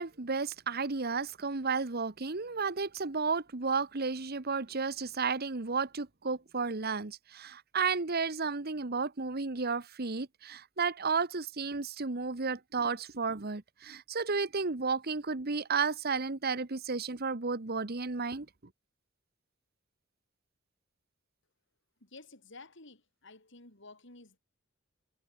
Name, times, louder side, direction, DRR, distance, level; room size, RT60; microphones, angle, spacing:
voice 1, 0.0-18.5, right 4 dB, 50° right, 1.3 m, -33 dB
voice 2, 22.0-24.4, left 3 dB, 65° left, 5.2 m, -52 dB
head